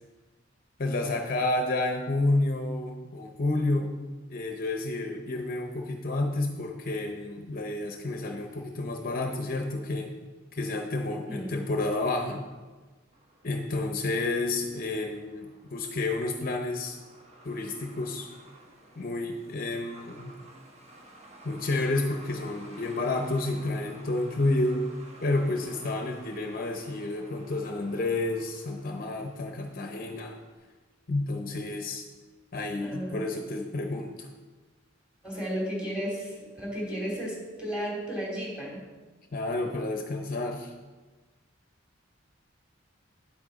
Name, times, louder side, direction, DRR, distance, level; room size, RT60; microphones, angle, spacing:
voice 1, 0.8-4.0 4.3-10.1 10.5-12.4 13.4-17.0 17.4-18.3 19.0-20.3 21.4-24.8 25.2-30.4 31.1-32.0 32.5-34.3 39.3-40.7, left 2 dB, 45° left, 3 dB, 0.8 m, -30 dB
voice 2, 11.3-11.6 32.8-33.2 35.2-38.8, equal, 5° right, -4 dB, 3.0 m, -34 dB
Truck, 13.1-30.5, right 1 dB, 35° right, 1.1 m, -53 dB
9.8 x 8.5 x 4.0 m, 1.3 s
head